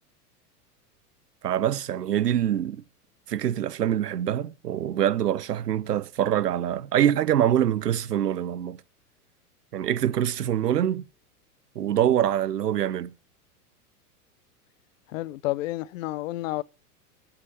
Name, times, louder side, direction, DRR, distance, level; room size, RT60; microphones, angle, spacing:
voice 1, 1.4-2.8 3.3-8.8 9.7-11.0 11.7-13.1, right 10 dB, 80° right, 0.9 m, -24 dB
voice 2, 15.1-16.6, left 17 dB, 55° left, 0.7 m, -30 dB
8.8 x 8.2 x 8.5 m
hypercardioid pair, 100°, 47 cm